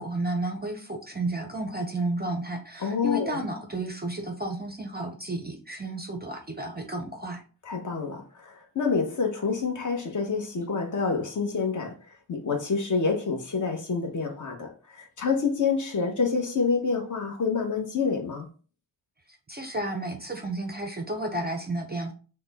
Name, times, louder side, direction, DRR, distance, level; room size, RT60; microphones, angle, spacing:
voice 1, 0.0-7.4 19.3-22.1, right 1 dB, 25° right, 0.5 m, -32 dB
voice 2, 2.8-3.4 7.6-18.5, left 5 dB, 45° left, 1.0 m, -28 dB
6.3 x 2.2 x 3.4 m
wide cardioid pair, 170°, 43 cm